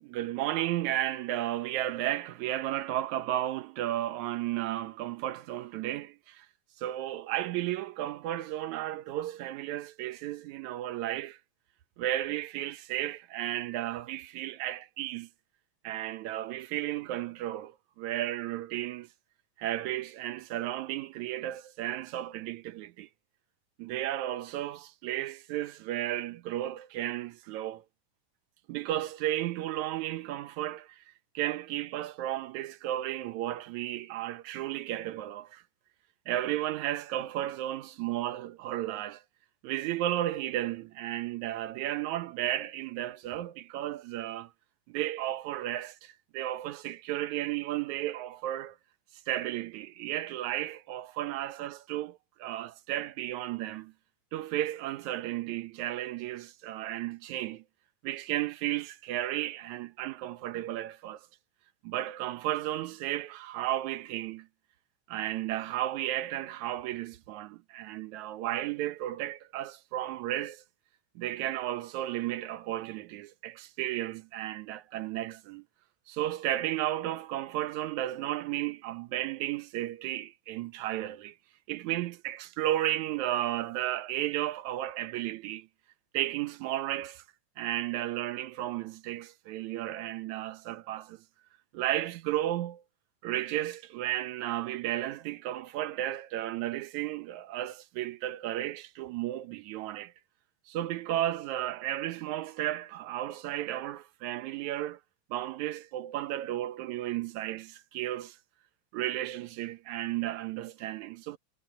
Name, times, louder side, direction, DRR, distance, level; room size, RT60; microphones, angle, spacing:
voice 1, 0.0-6.5 6.8-11.4 12.0-15.3 15.8-19.1 19.6-23.1 23.8-27.8 28.7-31.0 31.4-35.6 36.3-39.2 39.6-44.5 44.9-48.8 49.3-53.9 54.3-57.6 58.0-61.2 61.8-64.5 65.1-70.6 71.2-75.6 76.1-81.3 81.7-85.7 86.1-87.2 87.6-91.2 91.7-92.8 93.2-100.1 100.7-105.0 105.3-108.4 108.9-111.4, right 13 dB, 70° right, 2.2 m, -33 dB
omnidirectional pair, 3.7 m